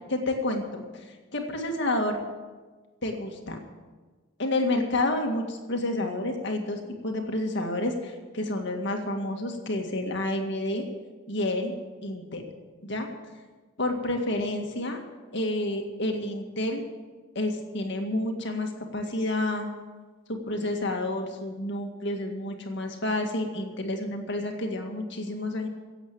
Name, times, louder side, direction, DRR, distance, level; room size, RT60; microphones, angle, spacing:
voice 1, 0.1-2.2 3.0-3.6 4.4-10.9 11.3-11.7 12.0-12.5 12.8-13.1 13.8-15.0 15.3-16.8 17.4-19.7 20.3-25.7, left 1 dB, 55° left, 3 dB, 2.0 m, -29 dB
17.0 x 8.0 x 7.7 m, 1.3 s
head